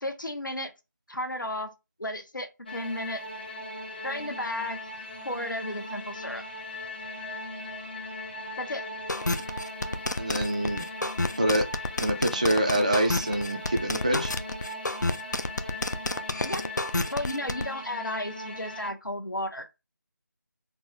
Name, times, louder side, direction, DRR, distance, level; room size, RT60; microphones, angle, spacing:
voice 1, 0.0-0.7 1.1-1.7 2.0-3.2 4.0-4.8 5.2-6.4 8.6-8.8 16.4-16.7 17.1-19.7, left 1 dB, 80° left, 0.9 m, -33 dB
sound 1, 2.7-18.9, left 1 dB, 30° left, 0.8 m, -39 dB
sound 2, 9.1-17.6, left 2 dB, 65° left, 0.5 m, -29 dB
voice 2, 10.2-10.9 11.4-11.6 12.0-14.3, right 1 dB, 20° right, 0.3 m, -26 dB
4.1 x 2.1 x 3.6 m
figure-of-eight pair, 160°, 10 cm